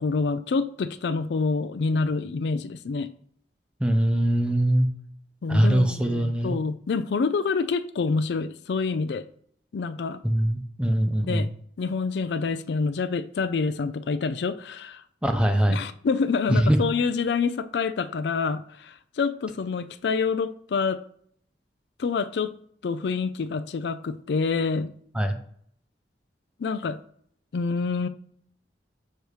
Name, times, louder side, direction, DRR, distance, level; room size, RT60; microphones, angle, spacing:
voice 1, 0.0-3.1 5.4-9.3 9.7-10.2 11.2-11.5 11.8-15.0 15.7-21.0 22.0-22.5 22.8-24.9 26.6-27.0 27.5-28.1, left 4 dB, 70° left, 0.4 m, -27 dB
voice 2, 3.8-4.9 5.5-6.6 10.2-11.5 15.2-15.8 16.5-16.9 25.1-25.4, right 1 dB, 5° right, 0.7 m, -22 dB
6.7 x 3.0 x 4.8 m
head